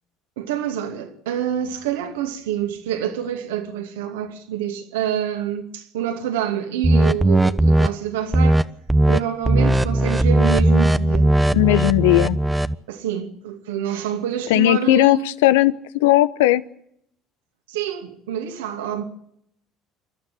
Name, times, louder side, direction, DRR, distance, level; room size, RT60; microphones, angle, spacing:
voice 1, 0.4-8.6 9.1-11.3 12.9-15.3 17.7-19.0, right 9 dB, 80° right, 2.4 m, -27 dB
sound 1, 6.8-7.9 8.3-8.6 8.9-9.2 9.4-12.7, right 1 dB, 10° right, 1.0 m, -17 dB
voice 2, 11.5-12.4 14.5-16.6, left 16 dB, 75° left, 0.8 m, -17 dB
27.5 x 12.5 x 8.4 m
hypercardioid pair, 60°, 0 cm